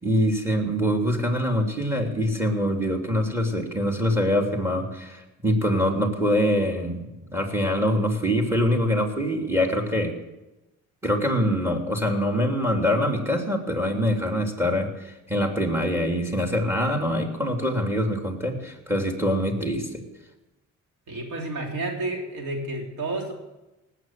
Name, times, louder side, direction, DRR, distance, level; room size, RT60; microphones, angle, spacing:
voice 1, 0.0-10.1 11.0-20.0, equal, 10° right, 3 dB, 3.2 m, -24 dB
voice 2, 21.1-23.3, right 2 dB, 75° right, 2 dB, 3.6 m, -30 dB
18.5 x 8.7 x 7.7 m, 1.0 s
cardioid pair, 90°, 30 cm